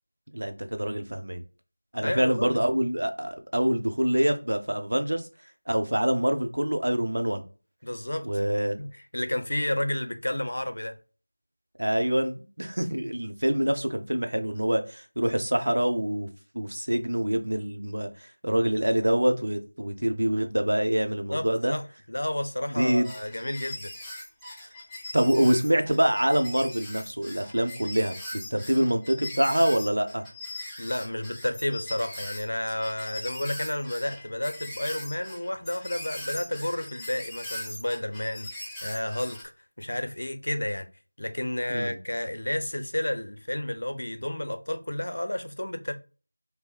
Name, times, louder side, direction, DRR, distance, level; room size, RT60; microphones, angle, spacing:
voice 1, 0.3-1.4 1.9-5.3 5.7-7.4 8.2-8.8 11.8-16.3 16.5-21.7 22.7-23.1 25.1-30.2 41.7-42.0, right 1 dB, 80° right, 0.8 m, -25 dB
voice 2, 2.0-2.6 7.8-8.3 8.8-8.9 9.1-11.0 21.3-23.9 30.8-39.4 39.8-40.9 41.2-45.9, left 1 dB, 75° left, 0.6 m, -31 dB
sound 1, 23.0-39.5, left 1 dB, 5° left, 0.4 m, -40 dB
5.6 x 2.1 x 2.3 m
figure-of-eight pair, 175°, 0 cm